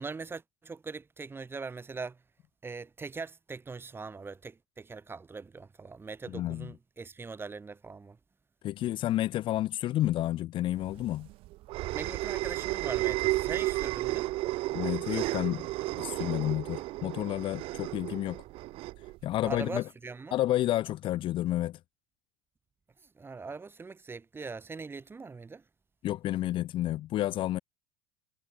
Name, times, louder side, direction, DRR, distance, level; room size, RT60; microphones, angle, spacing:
voice 1, 0.0-2.2 2.6-8.2 11.9-14.3 19.4-20.4 23.1-25.6, right 4 dB, 20° right, 1.2 m, -41 dB
voice 2, 6.3-6.7 8.6-11.3 14.7-18.4 19.2-19.8 20.3-21.8 26.0-27.6, left 14 dB, 45° left, 0.6 m, -30 dB
sound 1, 10.8-19.6, right 18 dB, 55° right, 0.5 m, -33 dB
hypercardioid pair, 80°, 11 cm